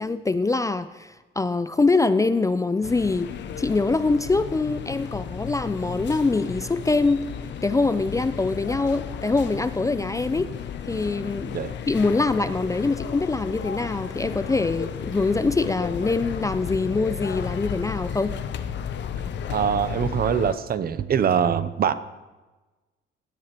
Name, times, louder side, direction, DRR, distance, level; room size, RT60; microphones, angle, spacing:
voice 1, 0.0-3.3 3.6-7.2 7.6-10.5 10.9-11.5 11.9-18.3, left 3 dB, 15° left, 12 dB, 0.4 m, -24 dB
sound 1, 2.8-20.5, left 8 dB, 65° left, 0.7 m, -33 dB
voice 2, 19.5-21.9, right 8 dB, 50° right, 14 dB, 0.6 m, -23 dB
16.5 x 7.9 x 3.0 m, 1.2 s
cardioid pair, 90°, 20 cm